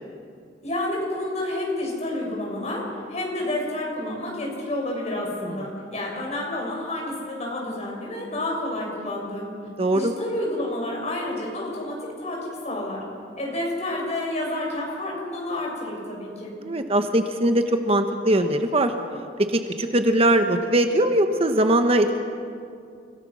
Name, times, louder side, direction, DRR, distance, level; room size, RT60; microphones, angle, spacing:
voice 1, 0.6-9.5 9.9-13.0 13.4-16.5, left 1 dB, 40° left, -2 dB, 6.7 m, -29 dB
voice 2, 9.8-10.1 16.6-18.9 19.5-22.2, right 1 dB, 35° right, 7 dB, 1.1 m, -21 dB
29.5 x 17.0 x 6.3 m, 2.4 s
head